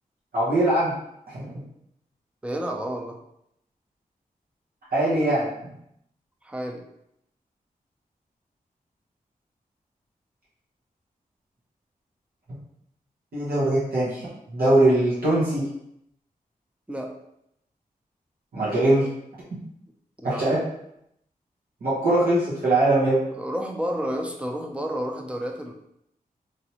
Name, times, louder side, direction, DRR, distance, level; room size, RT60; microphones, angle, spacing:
voice 1, 0.3-0.9 1.3-1.5 4.9-5.5 13.3-15.6 18.5-19.1 20.2-20.6 21.8-23.2, right 1 dB, 80° right, -9 dB, 1.0 m, -21 dB
voice 2, 2.4-3.2 6.4-6.8 16.9-17.1 20.2-20.5 23.3-25.7, equal, 10° right, 2 dB, 0.5 m, -30 dB
3.2 x 2.6 x 2.9 m, 0.79 s
wide cardioid pair, 70°, 15 cm